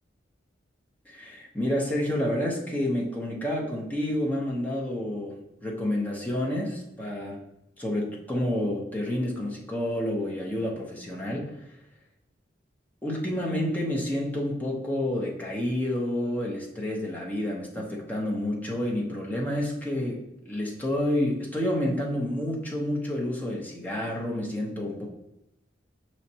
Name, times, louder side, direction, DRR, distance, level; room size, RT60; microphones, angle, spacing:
voice 1, 1.1-5.4 5.6-7.4 7.8-11.5 13.0-25.1, left 1 dB, 10° left, -3 dB, 0.7 m, -29 dB
5.6 x 3.1 x 2.8 m, 0.87 s
head